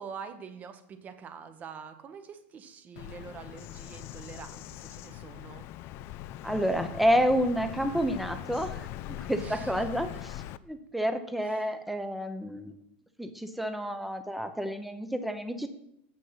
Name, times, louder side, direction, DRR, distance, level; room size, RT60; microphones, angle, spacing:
voice 1, 0.0-5.6 9.3-10.2 11.4-11.7, right 6 dB, 30° right, 9 dB, 0.9 m, -45 dB
Bird vocalization bird call bird song, 3.0-10.6, left 13 dB, 45° left, 0.3 m, -41 dB
voice 2, 6.4-8.8 9.1-12.8 13.2-15.7, equal, ahead, 8 dB, 0.7 m, -29 dB
7.5 x 6.5 x 5.7 m, 0.77 s
supercardioid pair, 135°, 6 cm